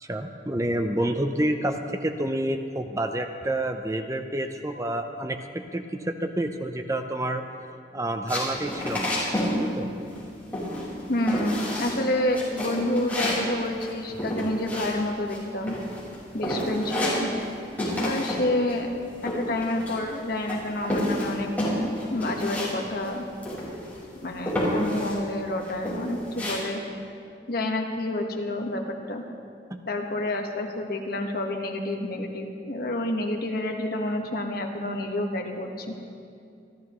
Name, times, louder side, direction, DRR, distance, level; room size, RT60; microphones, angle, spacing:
voice 1, 0.0-7.4 7.9-9.1 9.6-9.9 29.7-29.8, right 1 dB, 15° right, 6 dB, 0.6 m, -28 dB
sound 1, 8.3-9.6 9.8-10.3 10.5-11.0 11.3-12.0 12.3-15.4 15.7-16.1 16.4-17.5 17.8-18.4 18.7-20.1 20.5-22.7 23.0-23.1 23.4-24.0 24.5-25.2 25.6-26.5, left 1 dB, 10° left, 4.8 m, -29 dB
voice 2, 11.1-15.8 16.3-17.3 17.9-18.9 19.2-21.5 22.1-23.2 24.2-26.8 27.5-29.2 29.9-35.9, left 1 dB, 55° left, 2 dB, 1.4 m, -29 dB
27.5 x 13.0 x 3.1 m, 2.4 s
head